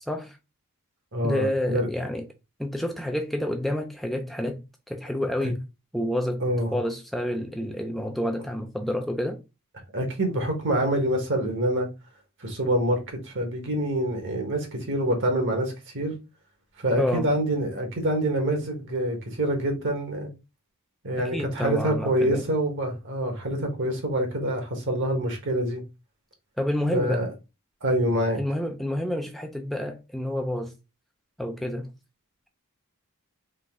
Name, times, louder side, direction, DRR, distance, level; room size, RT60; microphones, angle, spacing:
voice 1, 0.1-0.4 1.2-2.3 2.6-5.7 5.9-6.5 6.7-9.4 17.0-17.3 21.1-22.5 26.6-27.3 28.3-30.8 31.4-31.9, left 1 dB, ahead, 0.3 m, -29 dB
voice 2, 1.1-1.9 6.4-6.7 9.9-11.9 12.4-16.1 16.8-20.3 21.0-25.8 26.9-27.3 27.8-28.4, right 1 dB, 60° right, 1.4 m, -26 dB
3.8 x 2.7 x 3.6 m
head